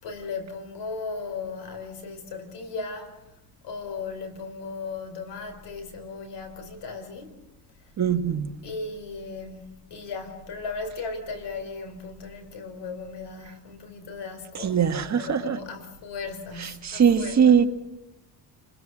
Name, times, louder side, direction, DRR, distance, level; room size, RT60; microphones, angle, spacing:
voice 1, 0.0-3.2 3.6-7.4 8.6-9.6 9.9-17.7, left 4 dB, 80° left, 4.2 m, -36 dB
voice 2, 8.0-8.5 14.6-15.6 16.8-17.7, right 7 dB, 40° right, 1.6 m, -21 dB
29.0 x 21.5 x 6.2 m
cardioid pair, 135°, 41 cm